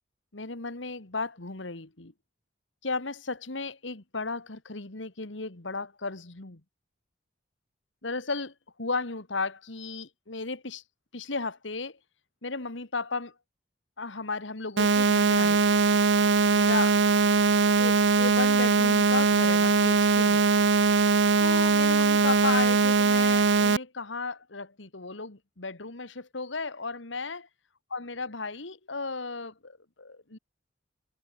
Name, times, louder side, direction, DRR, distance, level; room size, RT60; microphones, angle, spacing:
voice 1, 0.3-2.1 2.8-6.6 8.0-8.5 8.8-10.8 11.1-12.0 12.4-13.3 14.0-15.8 16.2-17.0 17.8-20.5 21.4-27.4 27.9-30.4, left 3 dB, 75° left, 2.0 m, -34 dB
sound 1, 14.8-23.8, right 4 dB, 65° right, 0.8 m, -21 dB
head